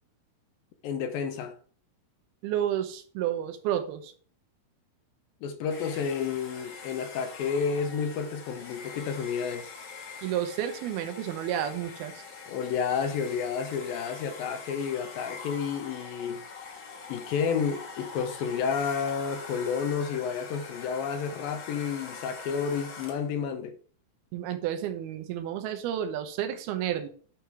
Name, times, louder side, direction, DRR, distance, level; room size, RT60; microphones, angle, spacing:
voice 1, 0.8-1.5 5.4-9.7 12.5-16.4 17.1-23.8, left 6 dB, 80° left, 2.5 m, -30 dB
voice 2, 2.4-4.1 10.2-12.2 24.3-27.1, right 10 dB, 85° right, 2.9 m, -31 dB
Domestic sounds home sounds, 5.7-23.4, left 4 dB, 55° left, 1.3 m, -44 dB
9.4 x 4.8 x 4.9 m
omnidirectional pair, 4.4 m